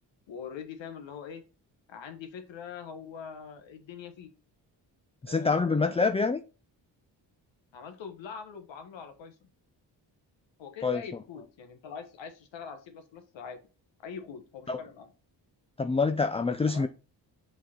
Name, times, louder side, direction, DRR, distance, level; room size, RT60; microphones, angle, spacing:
voice 1, 0.3-1.4 1.9-4.3 5.2-6.1 7.7-9.3 10.6-13.6 14.0-15.1 16.7-16.9, left 6 dB, 75° left, 1.4 m, -43 dB
voice 2, 5.2-6.4 10.8-11.0 14.7-14.8 15.8-16.9, left 4 dB, 15° left, 0.4 m, -26 dB
6.3 x 4.0 x 4.3 m
cardioid pair, 65°, 45 cm